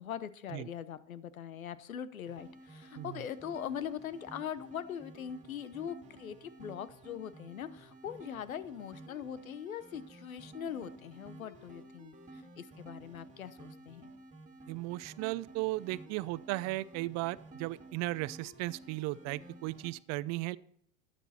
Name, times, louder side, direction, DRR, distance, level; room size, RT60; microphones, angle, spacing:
voice 1, 0.0-14.1, left 9 dB, 90° left, 15 dB, 0.9 m, -42 dB
sound 1, 2.2-19.9, right 2 dB, 20° right, 2.5 m, -53 dB
voice 2, 14.7-20.6, right 19 dB, 40° right, 18 dB, 0.6 m, -36 dB
12.0 x 9.1 x 4.3 m, 0.67 s
hypercardioid pair, 95°, 40 cm